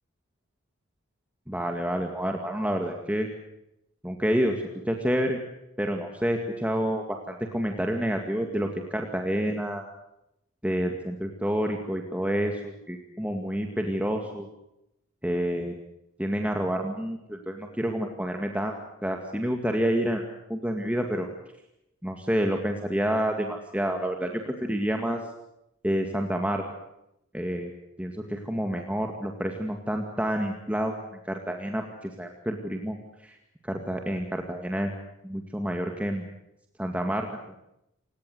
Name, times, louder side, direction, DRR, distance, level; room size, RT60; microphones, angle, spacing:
voice 1, 1.5-3.3 4.0-5.4 5.8-9.8 10.6-14.5 15.2-15.7 16.2-18.7 19.0-20.2 20.5-21.3 22.0-25.2 25.8-26.6 27.3-27.7 28.0-30.9 31.2-33.0 33.2-33.4 33.6-34.9 35.2-36.2 36.8-37.5, equal, 5° right, 3 dB, 2.1 m, -28 dB
29.5 x 18.0 x 8.0 m, 0.84 s
head